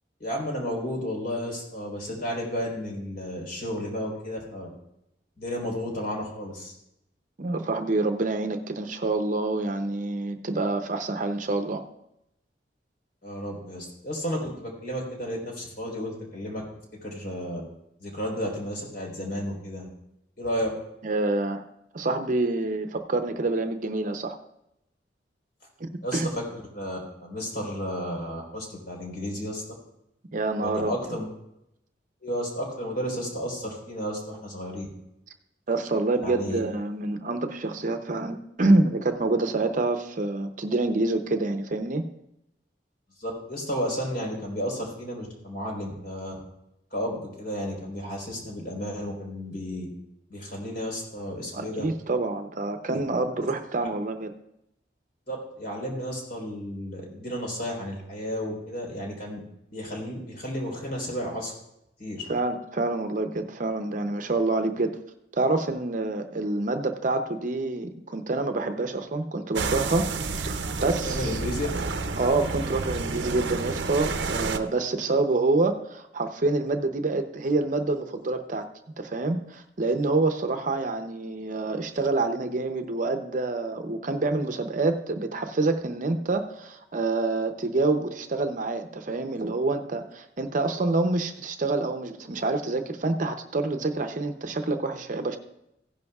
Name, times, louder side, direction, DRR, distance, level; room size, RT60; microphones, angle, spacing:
voice 1, 0.2-4.7 5.4-6.7 13.2-16.6 17.0-17.6 18.0-19.9 20.4-20.7 26.0-29.6 30.6-31.3 32.2-34.9 36.2-36.6 43.2-46.3 46.9-49.9 50.3-51.9 52.9-53.0 55.3-59.4 59.7-61.5 62.0-62.2 71.0-71.7, equal, 60° left, -1 dB, 4.0 m, -32 dB
voice 2, 7.4-11.8 21.0-21.6 21.9-24.4 25.8-26.3 30.3-31.2 35.7-42.1 51.5-54.3 62.3-65.0 65.3-70.1 70.4-71.4 72.1-78.7 79.0-95.4, right 2 dB, 45° right, 7 dB, 0.7 m, -27 dB
sound 1, 69.5-74.6, right 3 dB, 85° right, 0.7 m, -30 dB
15.5 x 11.0 x 2.4 m, 0.83 s
head